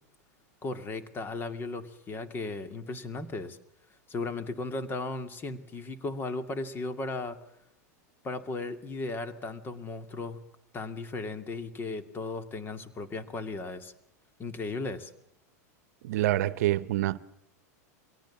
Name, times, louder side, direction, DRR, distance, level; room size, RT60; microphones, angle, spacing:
voice 1, 0.6-3.6 4.1-7.4 8.2-10.4 10.7-13.9 14.4-15.1, left 3 dB, 25° left, 2.4 m, -36 dB
voice 2, 16.0-17.2, right 15 dB, 70° right, 1.0 m, -26 dB
23.0 x 18.0 x 7.3 m
hypercardioid pair, 125°, 9 cm